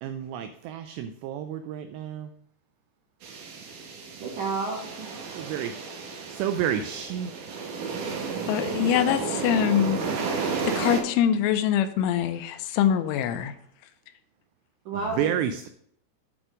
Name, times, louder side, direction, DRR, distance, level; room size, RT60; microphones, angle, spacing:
voice 1, 0.0-2.3 5.4-5.7 6.3-7.5 15.2-15.7, right 9 dB, 90° right, 9 dB, 2.4 m, -30 dB
sound 1, 3.2-11.0, right 5 dB, 70° right, 2.0 m, -32 dB
voice 2, 4.2-5.1 14.8-15.4, right 3 dB, 50° right, -3 dB, 2.6 m, -31 dB
voice 3, 8.5-10.0 10.6-13.5, left 10 dB, 85° left, 10 dB, 3.1 m, -24 dB
9.0 x 4.3 x 4.9 m, 0.68 s
omnidirectional pair, 5.4 m